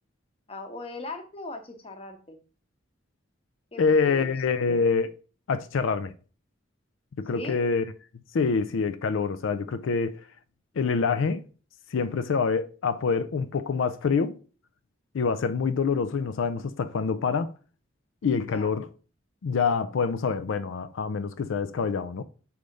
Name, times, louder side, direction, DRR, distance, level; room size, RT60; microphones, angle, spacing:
voice 1, 0.5-2.4 3.7-4.3 7.3-7.6 18.5-18.7, left 2 dB, 30° left, 0.9 m, -39 dB
voice 2, 3.8-5.1 5.5-6.1 7.2-7.8 8.3-10.2 10.8-11.4 11.9-14.3 15.1-17.5 18.2-18.9 19.4-22.2, left 5 dB, 85° left, 0.4 m, -26 dB
6.4 x 3.4 x 5.1 m
head